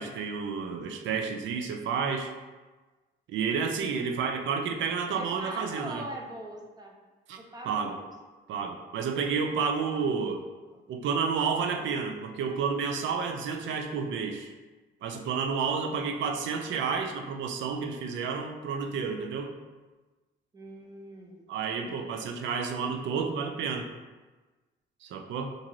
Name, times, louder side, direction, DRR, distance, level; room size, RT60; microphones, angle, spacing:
voice 1, 0.0-2.3 3.3-6.0 7.3-7.4 7.7-7.9 8.5-10.4 10.9-14.5 15.0-19.5 21.5-23.9 25.0-25.5, right 5 dB, 70° right, 4 dB, 0.4 m, -30 dB
voice 2, 5.1-6.9 7.5-8.1 9.9-10.0 10.7-10.8 20.5-21.5 21.8-22.0, right 1 dB, 20° right, 0 dB, 0.5 m, -42 dB
2.6 x 2.5 x 2.9 m, 1.2 s
cardioid pair, 90°, 20 cm